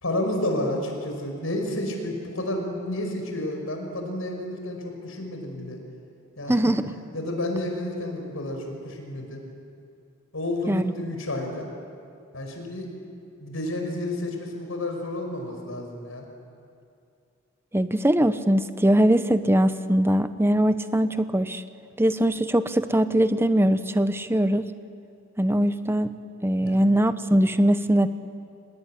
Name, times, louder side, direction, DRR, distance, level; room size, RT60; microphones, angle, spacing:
voice 1, 0.0-5.8 6.4-6.6 7.1-9.4 10.3-11.7 12.3-12.9 13.4-16.3 26.6-26.8, left 1 dB, 90° left, 3 dB, 5.6 m, -30 dB
voice 2, 6.5-6.9 10.7-10.9 17.7-21.6 22.0-24.7 25.4-26.1 26.4-28.1, right 1 dB, 10° right, 11 dB, 0.8 m, -21 dB
25.5 x 20.0 x 10.0 m, 2.5 s
head